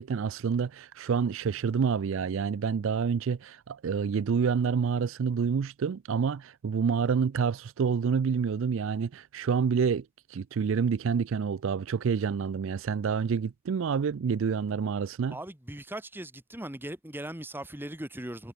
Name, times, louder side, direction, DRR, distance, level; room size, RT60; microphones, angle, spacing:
voice 1, 0.0-15.4, right 6 dB, 60° right, 0.4 m, -28 dB
voice 2, 15.3-18.5, right 1 dB, 10° right, 1.5 m, -39 dB
head